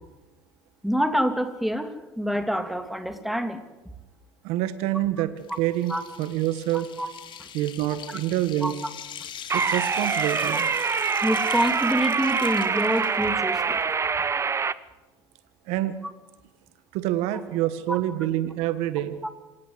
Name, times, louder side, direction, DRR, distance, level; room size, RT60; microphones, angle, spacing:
voice 1, 0.8-3.6 5.9-6.0 7.0-7.1 7.4-7.5 8.6-8.9 11.2-13.8 14.2-14.3 17.9-18.0, equal, ahead, 9 dB, 2.9 m, -26 dB
voice 2, 4.4-5.9 6.2-6.9 7.5-8.7 9.5-10.7 15.7-16.0 16.9-19.2, right 14 dB, 80° right, 12 dB, 1.6 m, -26 dB
sound 1, 5.4-13.8, left 9 dB, 50° left, 2.9 m, -42 dB
sound 2, 9.5-14.7, right 5 dB, 25° right, 1.0 m, -25 dB
26.5 x 18.0 x 8.1 m, 1.1 s
supercardioid pair, 100°, 11 cm